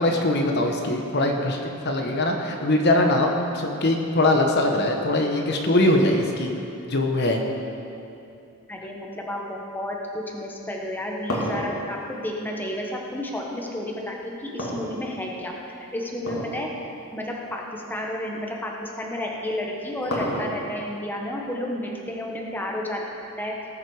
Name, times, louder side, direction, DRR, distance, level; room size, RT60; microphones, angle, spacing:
voice 1, 0.0-6.5 6.9-7.4, left 1 dB, 50° left, 2 dB, 1.0 m, -22 dB
voice 2, 8.7-16.7 17.1-23.0 23.4-23.5, left 1 dB, 10° left, -1 dB, 1.1 m, -31 dB
sound 1, 10.7-13.2 14.6-15.5 16.2-16.6 17.0-17.1 17.8-17.9 19.3-20.8, equal, 70° left, 2.5 m, -30 dB
18.5 x 7.5 x 4.8 m, 2.7 s
head